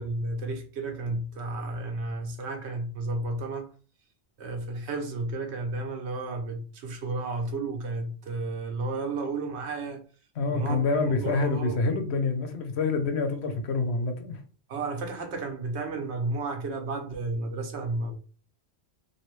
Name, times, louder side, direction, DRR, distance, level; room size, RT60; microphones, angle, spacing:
voice 1, 0.0-3.7 4.4-10.0 10.5-11.8 14.7-18.1, right 2 dB, 90° right, 1.0 m, -32 dB
voice 2, 10.4-14.4, left 3 dB, 85° left, 1.0 m, -27 dB
3.1 x 2.6 x 3.1 m
omnidirectional pair, 1.1 m